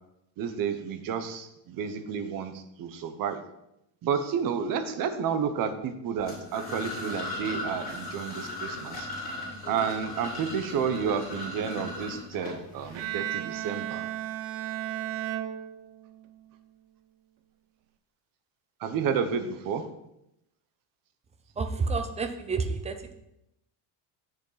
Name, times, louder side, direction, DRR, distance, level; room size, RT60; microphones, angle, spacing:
voice 1, 0.4-3.4 4.0-9.1 9.7-14.1 18.8-19.8, right 7 dB, 45° right, 9 dB, 0.9 m, -31 dB
sound 1, 6.2-13.0, left 2 dB, 20° left, 3.7 m, -37 dB
Bowed string instrument, 12.9-16.3, right 13 dB, 80° right, 0.8 m, -34 dB
voice 2, 21.6-23.0, right 4 dB, 15° right, 8 dB, 0.3 m, -29 dB
8.1 x 7.0 x 4.0 m, 0.84 s
cardioid pair, 165°, 46 cm